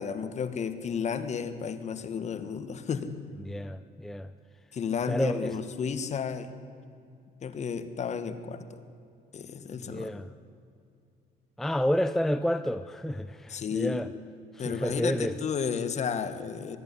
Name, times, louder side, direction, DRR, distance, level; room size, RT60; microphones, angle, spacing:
voice 1, 0.0-3.2 4.7-6.5 7.4-8.8 9.3-10.1 13.5-14.0 14.6-16.8, left 6 dB, 45° left, 10 dB, 1.5 m, -32 dB
voice 2, 3.4-4.3 5.1-5.5 9.8-10.3 11.6-14.1 14.5-15.3, equal, ahead, 12 dB, 0.5 m, -30 dB
20.0 x 13.5 x 9.9 m, 2.4 s
cardioid pair, 110°, 17 cm